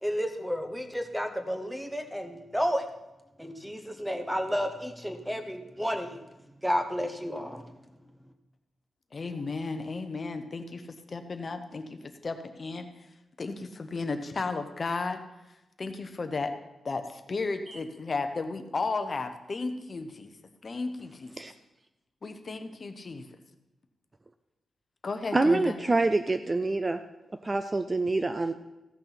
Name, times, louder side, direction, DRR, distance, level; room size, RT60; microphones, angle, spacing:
voice 1, 0.0-2.9 3.4-6.2 6.6-7.6, equal, ahead, 6 dB, 1.0 m, -31 dB
voice 2, 9.1-15.2 15.8-16.5 16.8-20.4 20.6-21.3 22.2-23.3 25.0-25.8, left 3 dB, 30° left, 8 dB, 0.8 m, -34 dB
voice 3, 25.3-27.0 27.4-28.5, right 2 dB, 20° right, 9 dB, 0.4 m, -26 dB
15.0 x 6.5 x 5.8 m, 0.99 s
wide cardioid pair, 170°, 0 cm